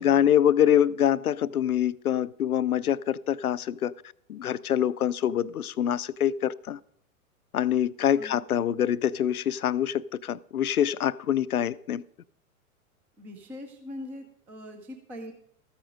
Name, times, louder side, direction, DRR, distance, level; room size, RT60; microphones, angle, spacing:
voice 1, 0.0-3.9 4.3-6.8 7.5-12.0, left 10 dB, 75° left, 0.5 m, -25 dB
voice 2, 13.2-15.3, left 1 dB, 5° right, 0.3 m, -42 dB
13.5 x 8.0 x 5.0 m
figure-of-eight pair, 100°, 44 cm